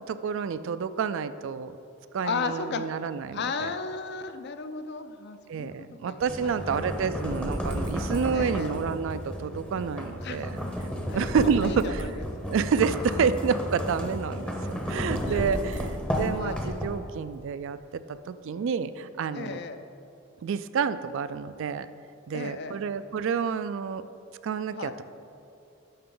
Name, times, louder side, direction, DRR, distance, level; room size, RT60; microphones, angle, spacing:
voice 1, 0.0-1.7 2.1-3.7 5.5-10.6 11.1-12.1 12.5-17.8 18.3-19.6 20.4-21.9 22.3-24.0 24.4-25.0, right 6 dB, 60° right, 13 dB, 0.3 m, -29 dB
voice 2, 2.2-2.8 3.3-6.8 8.3-8.7 10.2-10.5 11.1-12.6 15.2-15.6 16.3-16.6 19.3-19.8 22.3-22.8 24.8-25.0, left 5 dB, 50° left, 9 dB, 0.5 m, -35 dB
sound 1, 6.2-17.2, equal, 5° left, 0.7 m, -32 dB
11.0 x 6.8 x 3.8 m, 2.7 s
head